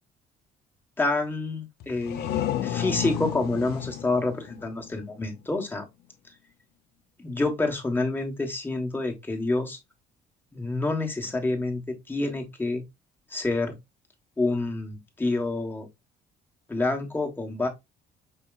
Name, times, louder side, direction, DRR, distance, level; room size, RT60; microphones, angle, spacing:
voice 1, 1.0-5.8 7.2-9.8 10.5-12.8 13.3-13.7 14.4-15.9 16.7-17.7, left 2 dB, 10° left, 1.2 m, -28 dB
sound 1, 1.8-5.4, left 11 dB, 75° left, 0.6 m, -32 dB
5.7 x 2.9 x 2.3 m
cardioid pair, 110°, 17 cm